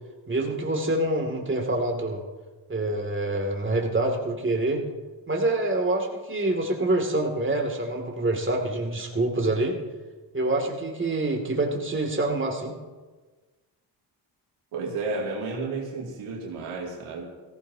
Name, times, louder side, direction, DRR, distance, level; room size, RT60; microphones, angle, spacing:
voice 1, 0.3-2.2 2.7-4.8 5.3-9.8 10.3-12.7, right 2 dB, 25° right, 1 dB, 2.6 m, -26 dB
voice 2, 14.7-17.3, right 3 dB, 80° right, -2 dB, 2.7 m, -32 dB
17.0 x 15.5 x 2.9 m, 1.3 s
supercardioid pair, 55°, 50 cm